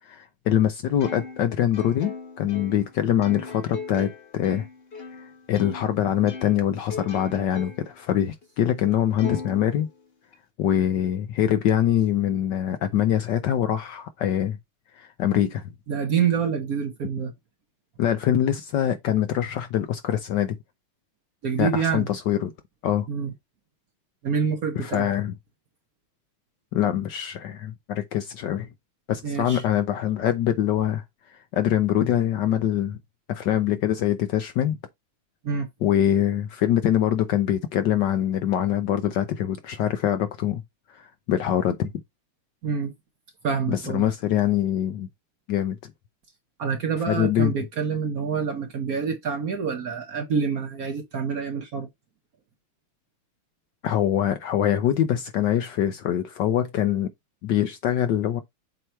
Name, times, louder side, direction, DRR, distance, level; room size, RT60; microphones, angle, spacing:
voice 1, 0.1-4.7 5.5-9.9 10.6-14.6 15.0-15.6 18.0-20.6 21.6-22.5 22.8-23.1 24.8-25.3 26.7-28.7 29.1-31.0 31.3-33.0 33.3-34.8 35.8-40.6 40.9-41.9 43.7-45.1 45.5-45.9 47.1-47.5 53.8-57.1 57.4-58.4, left 10 dB, 70° left, 1.1 m, -24 dB
Plucked string instrument, 1.0-5.9 6.3-8.0 8.4-8.5 9.2-10.3, left 4 dB, 35° left, 1.2 m, -38 dB
voice 2, 15.9-17.3 21.4-22.1 23.1-23.3 24.2-25.1 29.2-29.6 35.4-35.7 42.6-42.9 43.4-44.1 46.6-51.9, right 6 dB, 55° right, 1.1 m, -27 dB
7.8 x 2.9 x 4.4 m
omnidirectional pair, 2.4 m